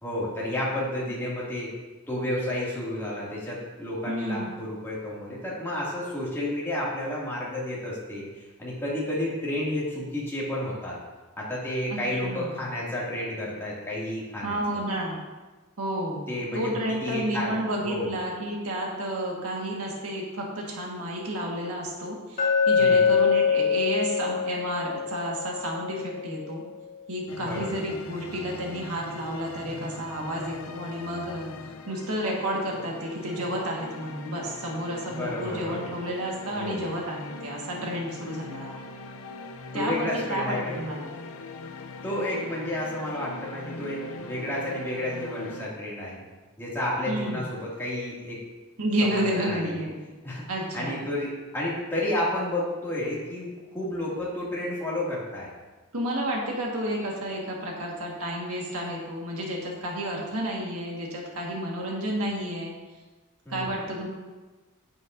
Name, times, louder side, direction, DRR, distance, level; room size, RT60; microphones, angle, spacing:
voice 1, 0.0-1.7 2.1-11.0 11.4-14.6 16.3-16.7 17.0-18.1 22.8-23.1 27.4-27.8 35.1-35.9 36.5-36.8 39.7-40.9 42.0-46.2 46.6-48.4 49.0-49.8 50.2-50.4 50.7-55.5 63.5-63.7, left 1 dB, 10° left, -7 dB, 2.3 m, -31 dB
voice 2, 4.1-4.6 11.9-12.6 14.4-15.2 15.8-16.3 16.5-26.6 27.1-31.5 31.9-38.7 39.7-41.2 47.1-47.5 48.8-50.0 50.5-50.9 55.9-62.7 63.5-64.1, right 1 dB, 80° right, -2 dB, 1.6 m, -31 dB
Glass, 22.4-26.5, left 6 dB, 40° left, 2.2 m, -24 dB
sound 1, 27.3-45.7, left 3 dB, 70° left, 0.6 m, -41 dB
9.5 x 8.7 x 2.6 m, 1.2 s
head